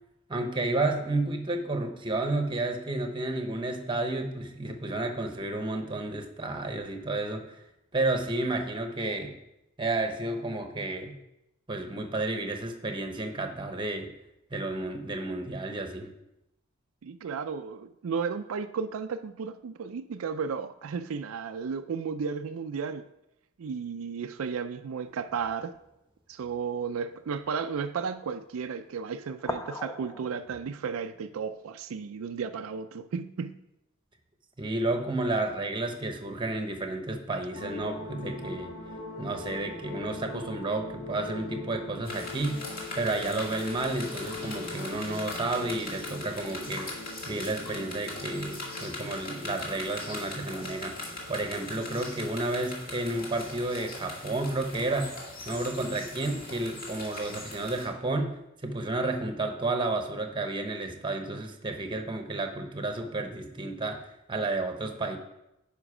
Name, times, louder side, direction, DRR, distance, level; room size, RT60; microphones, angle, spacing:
voice 1, 0.3-7.6 7.9-9.3 9.8-11.1 11.7-14.1 14.5-16.1 34.6-38.7 39.2-42.6 42.9-46.9 47.2-51.0 51.3-55.1 55.4-64.0 64.3-65.2, right 2 dB, 25° right, 0.9 m, -31 dB
voice 2, 17.0-23.1 23.6-25.8 26.3-33.6, right 6 dB, 75° right, 0.4 m, -34 dB
sound 1, 25.0-25.8 26.3-26.6 27.4-27.6 29.3-30.6, left 1 dB, 15° left, 0.4 m, -40 dB
sound 2, 37.5-51.4, left 3 dB, 80° left, 2.1 m, -42 dB
sound 3, 42.0-57.9, left 2 dB, 40° left, 2.1 m, -40 dB
10.0 x 5.2 x 4.9 m
head